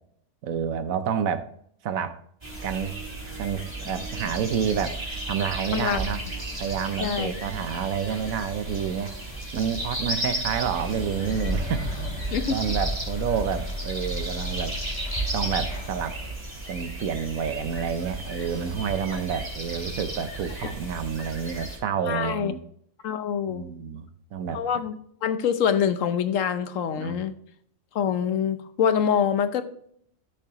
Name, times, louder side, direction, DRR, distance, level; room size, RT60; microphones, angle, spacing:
voice 1, 0.4-1.5 1.8-2.2 2.6-3.0 3.4-5.0 5.3-6.2 6.6-9.1 9.5-11.9 12.2-14.8 15.3-16.2 16.7-22.6 23.5-24.6 27.0-27.2, right 7 dB, 80° right, 11 dB, 1.2 m, -29 dB
sound 1, 2.4-21.8, right 1 dB, 20° right, 2.3 m, -34 dB
voice 2, 7.0-7.3 12.3-12.6 22.1-22.5 23.0-23.6 24.5-24.9 25.2-27.3 27.9-29.6, left 8 dB, 70° left, 10 dB, 1.1 m, -25 dB
sound 2, 10.7-16.3, left 1 dB, 55° left, 2.2 m, -33 dB
13.0 x 6.7 x 2.9 m, 0.67 s
omnidirectional pair, 1.4 m